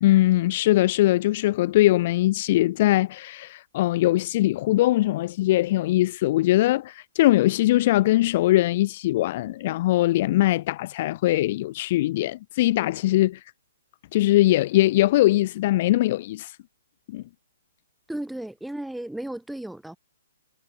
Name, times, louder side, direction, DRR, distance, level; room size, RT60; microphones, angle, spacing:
voice 1, 0.0-13.4 14.1-16.6 17.1-17.2, left 16 dB, 35° left, 0.4 m, -21 dB
voice 2, 18.1-20.0, right 1 dB, ahead, 1.9 m, -34 dB
hypercardioid pair, 170°, 0 cm